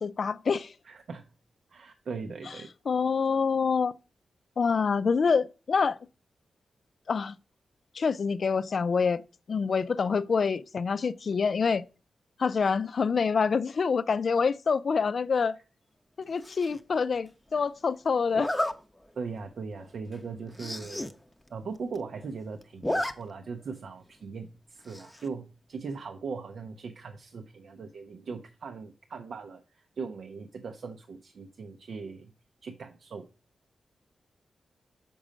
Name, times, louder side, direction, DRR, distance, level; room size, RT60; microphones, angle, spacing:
voice 1, 0.0-0.7 2.9-3.9 4.6-6.0 7.1-7.3 7.9-9.2 9.5-11.8 12.4-15.6 16.3-18.5, left 5 dB, 55° left, 0.4 m, -26 dB
voice 2, 0.8-1.3 1.7-2.7 19.2-21.1 21.5-32.3 32.6-33.3, right 5 dB, 70° right, 0.6 m, -39 dB
Zipper (clothing), 16.4-16.8 18.3-18.7 19.3-19.5 19.8-19.9 20.1-20.2 20.5-21.1 21.5-21.6 21.8-22.3 22.6-23.1 23.5-23.6 24.9-25.3, left 1 dB, 10° left, 0.7 m, -32 dB
6.1 x 5.3 x 5.0 m
wide cardioid pair, 95°, 0 cm